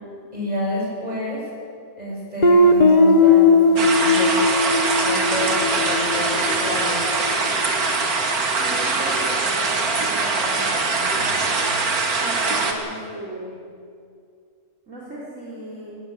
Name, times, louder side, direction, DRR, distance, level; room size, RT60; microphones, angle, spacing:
voice 1, 0.3-1.4 2.0-4.4 5.0-7.1, left 1 dB, 25° right, -4 dB, 7.6 m, -28 dB
Guitar, 2.4-7.1, left 3 dB, 30° left, 1.3 m, -17 dB
sound 1, 3.8-12.7, right 3 dB, 85° right, 2.5 m, -22 dB
voice 2, 8.6-11.3 12.2-13.6 14.9-15.9, right 1 dB, 60° right, -6 dB, 4.2 m, -36 dB
18.0 x 18.0 x 8.8 m, 2.3 s
omnidirectional pair, 1.5 m